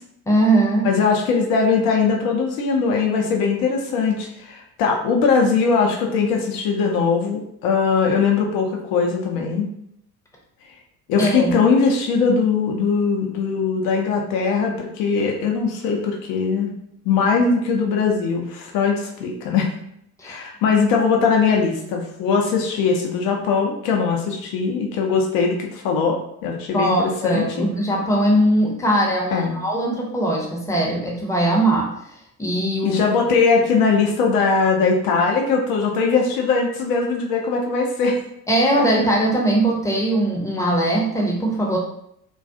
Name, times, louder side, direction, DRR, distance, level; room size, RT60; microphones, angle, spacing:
voice 1, 0.3-0.9 11.2-11.6 20.2-20.4 26.7-31.9 32.4-33.0 38.5-41.8, right 1 dB, 5° left, -2 dB, 0.7 m, -20 dB
voice 2, 0.8-9.7 11.1-16.7 17.0-19.7 20.2-27.5 29.3-29.6 32.8-38.2 38.8-38.9, left 5 dB, 50° left, 1 dB, 0.6 m, -20 dB
2.3 x 2.3 x 2.6 m, 0.74 s
figure-of-eight pair, 60°, 46 cm